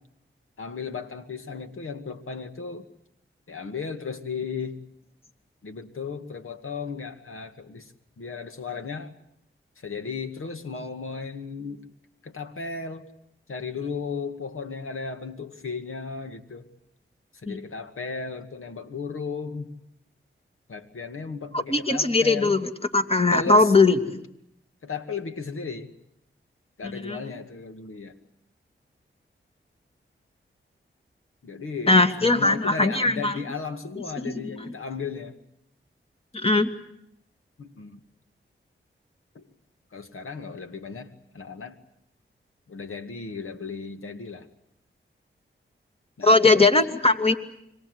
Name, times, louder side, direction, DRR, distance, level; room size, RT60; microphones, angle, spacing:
voice 1, 0.6-2.9 3.5-4.8 5.6-9.1 9.8-11.8 12.2-13.1 13.5-16.6 17.4-19.7 20.7-22.6 23.3-23.7 24.8-25.9 26.8-28.1 31.4-35.3 37.6-38.0 39.3-39.4 39.9-41.8 42.7-44.5 46.2-46.6, left 5 dB, 80° left, 7 dB, 2.2 m, -35 dB
voice 2, 21.5-24.2 26.8-27.2 31.9-33.4 36.3-36.7 46.2-47.4, left 3 dB, 25° left, 7 dB, 2.6 m, -20 dB
27.0 x 23.5 x 8.2 m, 0.77 s
cardioid pair, 45°, 21 cm